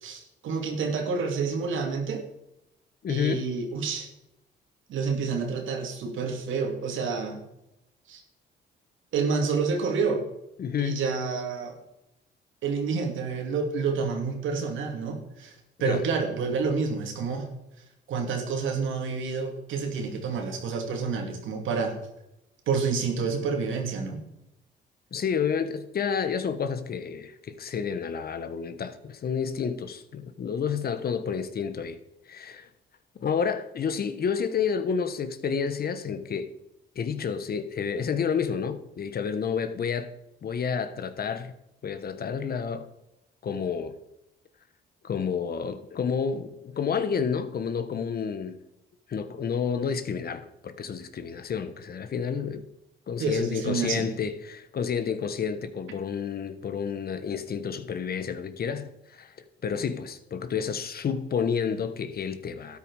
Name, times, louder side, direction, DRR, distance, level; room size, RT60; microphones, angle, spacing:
voice 1, 0.0-2.2 3.1-4.1 4.9-7.4 8.1-8.2 9.1-10.3 10.8-11.7 12.6-15.5 15.8-17.5 18.1-22.0 22.7-24.2 53.2-54.1, right 5 dB, 80° right, 2.6 m, -28 dB
voice 2, 3.0-3.5 10.6-11.0 15.8-16.0 25.1-32.0 32.3-32.7 33.2-36.5 36.9-40.1 40.4-41.6 41.8-42.9 43.4-44.0 45.0-48.6 49.1-52.7 53.1-59.3 59.6-62.8, left 6 dB, 50° left, 1.2 m, -30 dB
12.5 x 9.8 x 4.8 m
cardioid pair, 90°, 20 cm